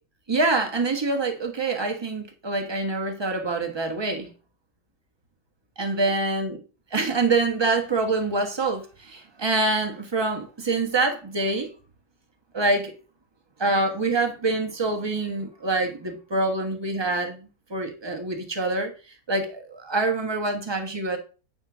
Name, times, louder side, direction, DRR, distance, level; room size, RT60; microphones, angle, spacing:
voice 1, 0.3-4.3 5.8-6.6 6.9-11.7 12.5-12.9 13.6-18.9 19.3-21.2, right 3 dB, 20° right, 1.3 m, -25 dB
8.9 x 4.4 x 6.1 m
omnidirectional pair, 1.6 m